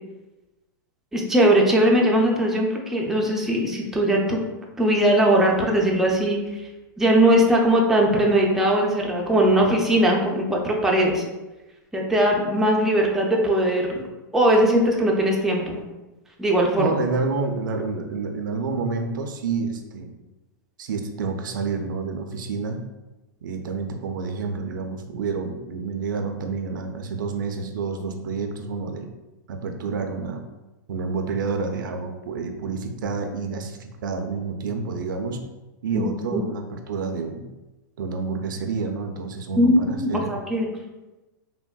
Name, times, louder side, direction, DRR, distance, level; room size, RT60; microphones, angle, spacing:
voice 1, 1.1-4.4 4.8-6.4 7.0-11.2 11.9-14.0 14.3-15.8 16.4-16.9 35.9-36.0 36.3-36.4 39.6-40.7, right 1 dB, 5° right, -2 dB, 0.4 m, -20 dB
voice 2, 16.8-20.1 20.8-22.8 23.4-29.1 29.5-30.4 30.9-35.4 35.8-37.5 38.0-40.3, right 4 dB, 85° right, 5 dB, 0.4 m, -29 dB
3.3 x 2.1 x 2.2 m, 1.1 s
hypercardioid pair, 125°, 10 cm